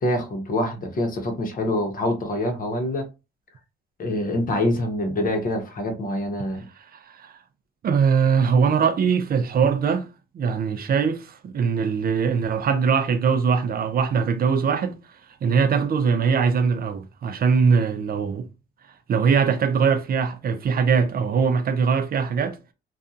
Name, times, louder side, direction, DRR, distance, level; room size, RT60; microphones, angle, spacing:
voice 1, 0.0-3.1 4.0-6.7, left 1 dB, 45° left, 0.8 m, -25 dB
voice 2, 6.8-7.4 7.8-10.1 10.3-14.9 15.4-18.5 19.1-22.6, right 6 dB, 50° right, 0.5 m, -21 dB
2.7 x 2.3 x 2.4 m
cardioid pair, 90°, 20 cm